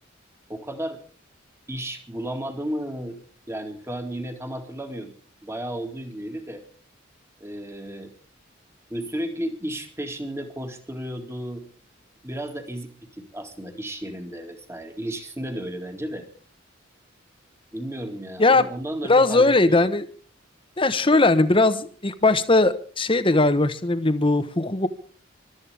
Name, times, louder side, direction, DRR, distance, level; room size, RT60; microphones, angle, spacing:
voice 1, 0.5-1.0 1.7-3.2 3.5-5.2 5.4-6.6 7.4-8.1 8.9-11.7 12.2-16.3 17.7-19.9, right 1 dB, 15° right, 5 dB, 2.2 m, -33 dB
voice 2, 19.1-20.0 20.8-24.9, left 2 dB, 25° left, 11 dB, 1.2 m, -19 dB
26.0 x 13.0 x 3.5 m, 0.42 s
head